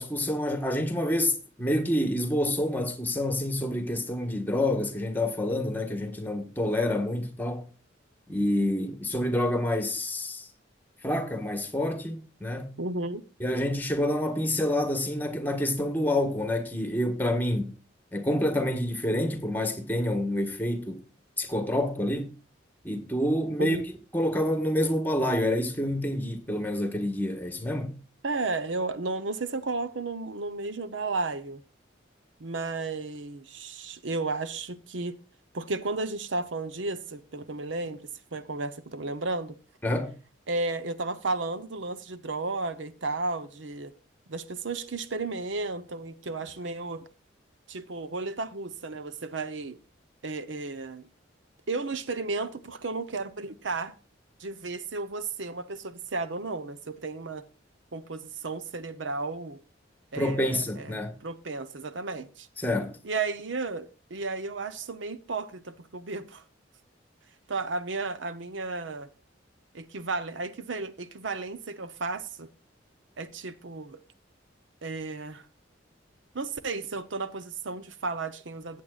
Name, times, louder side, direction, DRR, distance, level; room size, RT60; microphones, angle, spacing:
voice 1, 0.0-7.6 8.3-10.5 11.0-12.7 13.4-17.8 18.1-21.0 21.4-22.3 22.8-23.8 24.1-28.0 39.8-40.1 60.2-61.2 62.6-63.0, left 1 dB, 10° left, 1.4 m, -28 dB
voice 2, 12.8-13.2 23.6-23.8 28.2-31.6 32.4-35.2 35.5-39.6 40.5-43.9 44.3-47.1 47.7-49.8 50.2-51.1 51.7-53.9 54.4-57.5 57.9-59.6 60.1-60.9 61.2-62.5 63.0-66.4 67.5-69.1 69.7-72.5 73.2-74.0 74.8-75.5 76.3-78.8, right 3 dB, 75° right, 0.8 m, -33 dB
15.0 x 8.5 x 2.4 m
head